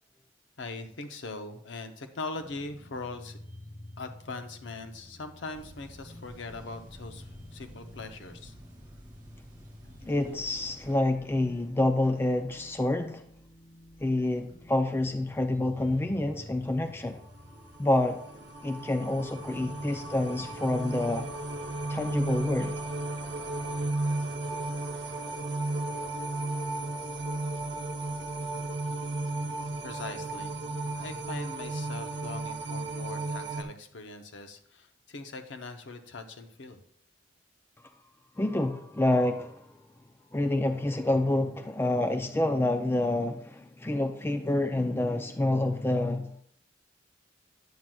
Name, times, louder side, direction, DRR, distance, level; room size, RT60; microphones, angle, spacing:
voice 1, 0.6-3.4 4.0-8.5 29.8-30.6 30.9-36.8, left 3 dB, 75° left, 0.7 m, -41 dB
sound 1, 2.3-21.1, left 1 dB, 55° left, 2.9 m, -50 dB
sound 2, 5.5-11.0, equal, 20° right, 2.0 m, -52 dB
voice 2, 10.1-13.2 14.0-17.2 17.8-18.2 18.6-21.3 21.9-22.8 38.4-39.7 40.3-46.4, left 1 dB, 10° left, 0.4 m, -28 dB
sound 3, 17.4-33.6, right 2 dB, 65° right, 0.9 m, -34 dB
9.2 x 7.3 x 2.3 m
head